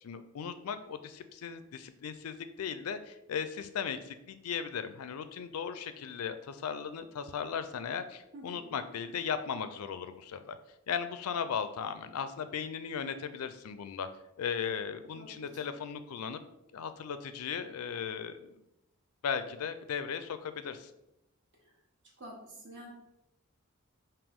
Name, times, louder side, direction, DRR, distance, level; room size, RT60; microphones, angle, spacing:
voice 1, 0.0-10.6 10.9-14.1 14.4-16.4 16.7-18.6 19.2-20.9, left 7 dB, 85° left, 11 dB, 0.4 m, -37 dB
voice 2, 8.3-8.7 15.2-15.5 21.6-21.7 22.2-22.9, equal, 55° right, -2 dB, 1.3 m, -48 dB
5.1 x 2.8 x 3.6 m, 0.85 s
head